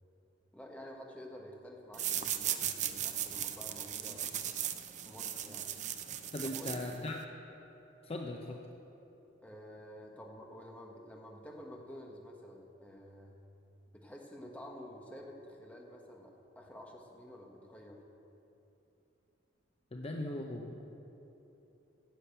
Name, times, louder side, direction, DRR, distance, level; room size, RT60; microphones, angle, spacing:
voice 1, 0.5-4.3 5.0-5.7 6.4-6.8 9.4-13.3 13.9-18.0, equal, 10° left, 0 dB, 1.3 m, -50 dB
sound 1, 1.9-7.2, right 10 dB, 40° right, 0.5 m, -37 dB
voice 2, 6.3-7.2 8.0-8.6 19.9-20.7, left 1 dB, 30° left, 1 dB, 0.7 m, -39 dB
10.0 x 7.2 x 8.2 m, 3.0 s
head